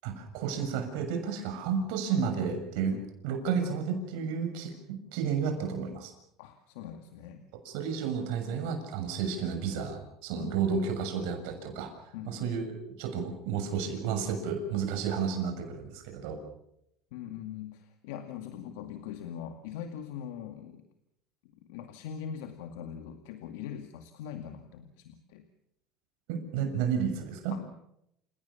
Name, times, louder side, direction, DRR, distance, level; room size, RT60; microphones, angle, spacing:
voice 1, 0.0-3.0 3.2-6.1 7.6-11.9 12.3-16.4 26.3-27.6, right 6 dB, 80° right, 5 dB, 6.7 m, -32 dB
voice 2, 6.4-7.4 10.3-10.6 12.1-12.5 17.1-20.8 21.4-25.4 27.5-27.8, left 9 dB, 85° left, 7 dB, 2.1 m, -42 dB
29.5 x 18.0 x 7.1 m, 0.78 s
supercardioid pair, 115°, 0 cm